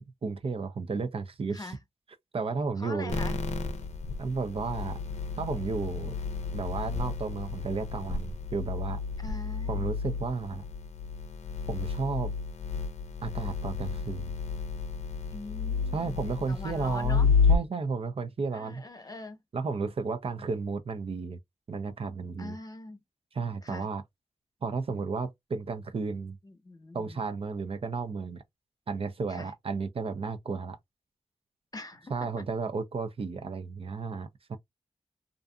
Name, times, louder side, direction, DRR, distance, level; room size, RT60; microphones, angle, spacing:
voice 1, 0.0-1.8 2.3-3.2 4.2-5.0 5.4-6.2 6.5-9.0 9.7-10.6 11.7-12.3 13.2-14.3 15.9-18.8 19.5-21.4 21.7-22.6 23.3-24.0 24.6-26.4 26.9-28.4 28.9-30.8 32.1-34.6, right 4 dB, 55° right, 0.5 m, -33 dB
voice 2, 2.8-3.4 9.2-9.9 15.3-17.3 18.4-19.4 20.3-20.4 22.4-23.0 23.6-23.9 26.4-27.2 29.3-29.5 31.7-32.4, left 2 dB, 30° left, 0.9 m, -43 dB
sound 1, 3.1-17.6, left 5 dB, 70° left, 0.5 m, -31 dB
2.5 x 2.5 x 2.3 m
cardioid pair, 50°, 12 cm